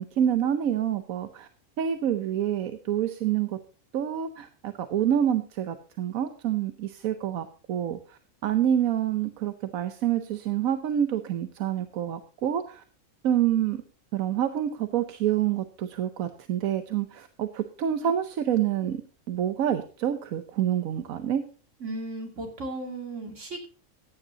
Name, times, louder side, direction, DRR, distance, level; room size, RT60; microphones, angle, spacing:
voice 1, 0.0-1.5 1.8-3.6 3.9-12.8 13.2-13.8 14.1-19.0 19.3-21.4, right 10 dB, 85° right, 9 dB, 1.2 m, -27 dB
voice 2, 21.8-23.7, right 2 dB, 60° right, 2 dB, 2.9 m, -35 dB
15.0 x 10.0 x 2.8 m, 0.38 s
omnidirectional pair, 1.4 m